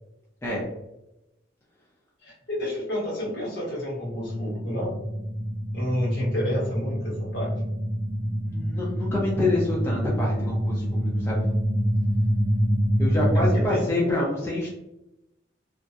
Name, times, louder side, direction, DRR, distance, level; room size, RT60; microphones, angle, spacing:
voice 1, 2.2-5.0 5.7-7.5 13.3-13.9, left 1 dB, 60° left, -5 dB, 1.0 m, -29 dB
sound 1, 4.1-13.5, equal, 75° right, 0.7 m, -26 dB
voice 2, 8.2-11.5 13.0-14.7, left 2 dB, 15° left, -5 dB, 0.4 m, -27 dB
2.6 x 2.0 x 2.3 m, 0.91 s
head